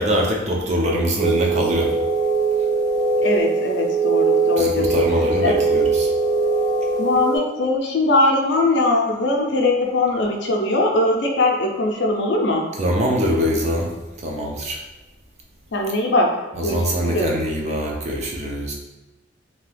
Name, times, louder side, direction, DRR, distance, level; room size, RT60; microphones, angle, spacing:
voice 1, 0.0-1.9 4.6-6.1 12.8-13.9 14.2-14.8 16.5-18.7, equal, 35° right, -1 dB, 0.4 m, -23 dB
sound 1, 1.2-7.4, right 4 dB, 60° right, 1.4 m, -21 dB
voice 2, 3.2-4.9 5.4-5.6 7.0-12.7 15.7-16.4 16.6-17.3, left 2 dB, 70° left, 1 dB, 0.5 m, -20 dB
2.8 x 2.2 x 3.2 m, 1.1 s
head